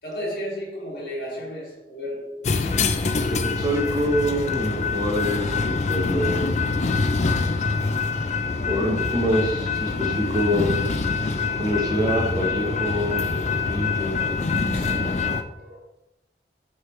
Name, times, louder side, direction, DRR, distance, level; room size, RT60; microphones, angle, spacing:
voice 1, 0.0-2.5 8.4-8.9 14.5-15.8, equal, 60° left, 2.2 m, -34 dB
sound 1, 2.4-15.4, left 4 dB, 40° left, 0.4 m, -25 dB
voice 2, 3.2-6.4 8.6-10.8 11.6-13.2 13.7-14.2, equal, 20° right, 1.1 m, -25 dB
8.4 x 3.7 x 3.2 m
head